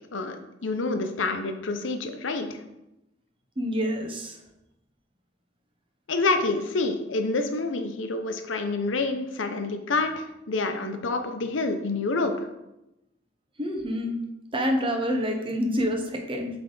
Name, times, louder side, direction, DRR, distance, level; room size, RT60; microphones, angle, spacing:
voice 1, 0.6-2.5 6.1-12.5, left 3 dB, 85° left, 7 dB, 0.7 m, -27 dB
voice 2, 3.6-4.3 13.6-14.1 14.5-16.5, equal, 30° right, 2 dB, 0.9 m, -27 dB
7.9 x 3.4 x 3.9 m, 0.90 s
head